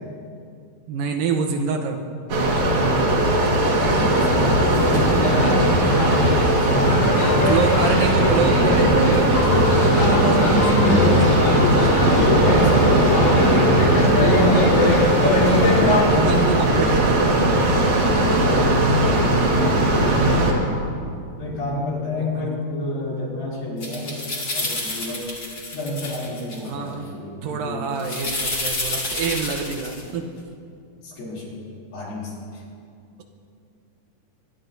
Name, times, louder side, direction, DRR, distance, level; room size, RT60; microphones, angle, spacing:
voice 1, 0.9-2.0 7.4-11.6 14.4-15.8 16.1-17.4 21.4-21.8 22.2-22.5 26.6-27.1 27.4-30.3, right 5 dB, 80° right, 3 dB, 2.5 m, -27 dB
sound 1, 2.3-20.5, right 1 dB, 55° right, 2.6 m, -19 dB
voice 2, 3.8-7.5 12.4-13.2 18.1-20.2 21.4-25.3 25.7-27.9 31.0-31.6 31.9-32.6, left 2 dB, 75° left, -6 dB, 4.8 m, -30 dB
sound 2, 4.7-16.0, left 1 dB, 50° left, 2.4 m, -20 dB
sound 3, 23.8-26.7 28.0-30.0, left 2 dB, 35° left, 2.8 m, -29 dB
23.5 x 11.0 x 2.7 m, 2.4 s
omnidirectional pair, 4.2 m